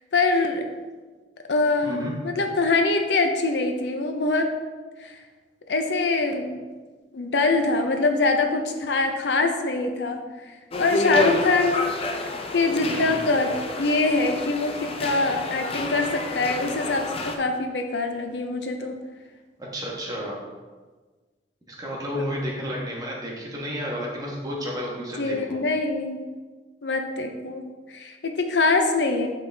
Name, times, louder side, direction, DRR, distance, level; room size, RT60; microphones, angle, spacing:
voice 1, 0.1-0.7 1.5-4.5 5.0-5.2 5.7-6.6 7.1-10.2 10.7-11.9 12.5-19.0 22.1-22.2 25.2-26.2 26.8-27.6 27.9-29.3, left 3 dB, 80° left, 5 dB, 0.7 m, -24 dB
voice 2, 1.8-2.1 12.8-13.2 19.7-20.4 21.7-25.6, equal, 20° right, -3 dB, 1.3 m, -31 dB
sound 1, 10.7-17.4, left 2 dB, 35° left, 0.5 m, -29 dB
7.9 x 4.0 x 3.4 m, 1.4 s
head